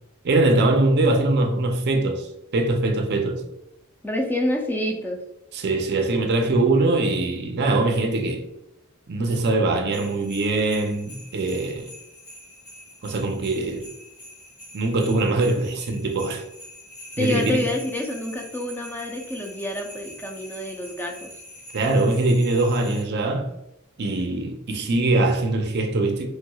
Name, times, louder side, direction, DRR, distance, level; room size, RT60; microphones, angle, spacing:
voice 1, 0.2-3.5 5.5-8.4 9.1-11.9 13.0-13.9 14.7-16.4 17.2-17.6 21.7-23.5 24.0-26.3, right 2 dB, 50° right, 0.5 m, -22 dB
voice 2, 4.0-5.2 17.2-21.3, left 1 dB, 10° left, 0.5 m, -27 dB
sound 1, 9.9-23.0, equal, 65° left, 1.4 m, -44 dB
3.1 x 3.0 x 2.2 m
head